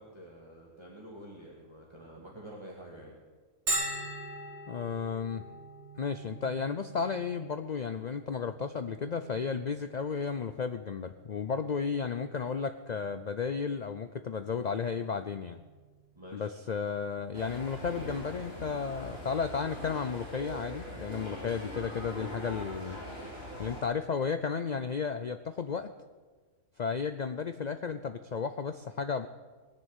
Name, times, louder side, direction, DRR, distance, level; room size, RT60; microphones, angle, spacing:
voice 1, 0.0-3.2 16.2-16.6, right 1 dB, 20° right, -4 dB, 2.1 m, -48 dB
Bell, 3.7-19.1, right 1 dB, 50° right, 2.0 m, -43 dB
voice 2, 4.7-5.4 6.0-15.6 16.3-23.0 23.6-25.9 26.8-29.3, left 6 dB, 60° left, 10 dB, 0.4 m, -33 dB
sound 1, 17.3-23.8, equal, 45° left, 3.6 m, -42 dB
20.5 x 6.9 x 9.1 m, 1.4 s
omnidirectional pair, 1.4 m